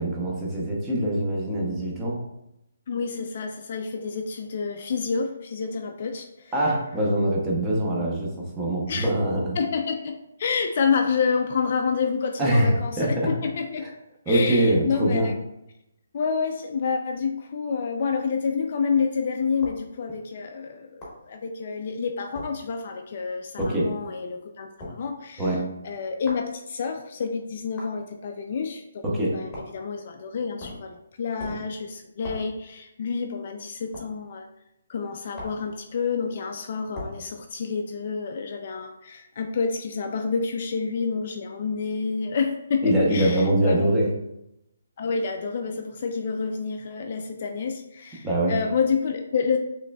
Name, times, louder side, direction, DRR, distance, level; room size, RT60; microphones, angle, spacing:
voice 1, 0.0-2.2 6.5-9.6 12.4-13.4 14.3-15.3 23.6-24.0 25.4-25.7 29.0-29.4 42.8-44.1 48.2-48.6, right 1 dB, 10° right, -4 dB, 0.6 m, -23 dB
voice 2, 2.9-6.5 8.9-9.1 9.6-13.9 14.3-15.3 16.1-25.5 25.8-29.0 29.3-34.5 34.9-43.9 45.0-49.6, left 5 dB, 40° left, 4 dB, 0.3 m, -28 dB
sound 1, 19.6-19.8 21.0-21.2 22.3-22.5 23.6-23.8 24.8-25.0 26.3-26.5 27.8-28.0 29.5-29.8 30.6-30.9 31.4-31.7 32.2-32.5 33.9-34.1 35.3-35.7 36.9-37.2, left 1 dB, 10° left, 1.0 m, -38 dB
6.3 x 3.1 x 2.2 m, 0.85 s
hypercardioid pair, 170°, 0 cm